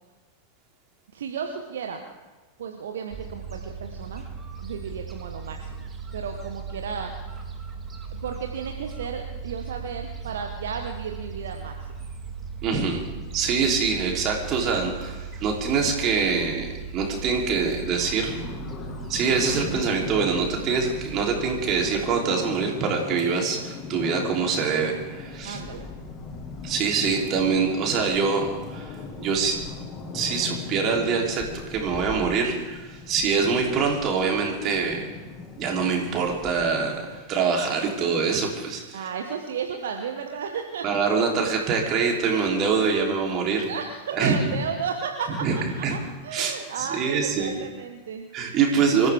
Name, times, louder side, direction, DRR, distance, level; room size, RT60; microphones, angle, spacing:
voice 1, 1.1-2.1 2.6-4.2 4.6-5.9 6.1-7.1 8.2-11.7 25.4-25.9 38.9-40.8 43.7-45.3 45.6-48.3, right 6 dB, 60° right, 4 dB, 1.2 m, -33 dB
Gull seagull, 3.1-22.0, right 5 dB, 20° right, 1.9 m, -37 dB
voice 2, 12.6-13.0 13.3-18.4 19.1-25.6 26.6-28.9 29.2-29.6 30.1-35.1 35.6-39.0 40.8-43.7 44.1-44.5 45.4-45.5 45.8-46.0 46.3-47.6 48.3-49.1, right 5 dB, 35° right, 0 dB, 3.5 m, -24 dB
sound 1, 17.9-37.2, left 4 dB, 25° left, 1.9 m, -39 dB
25.5 x 14.5 x 3.6 m, 1.2 s
figure-of-eight pair, 90°, 0 cm